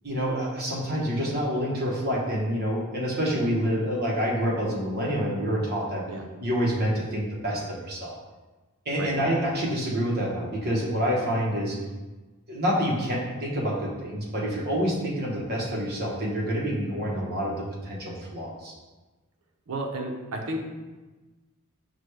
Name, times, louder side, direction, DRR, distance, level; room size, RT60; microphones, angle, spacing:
voice 1, 0.0-6.0 6.4-8.1 8.9-11.8 12.5-17.6 17.8-18.7, equal, 45° right, -3 dB, 1.0 m, -27 dB
voice 2, 19.7-20.6, right 1 dB, 70° right, 1 dB, 0.7 m, -32 dB
6.0 x 2.2 x 3.2 m, 1.2 s
head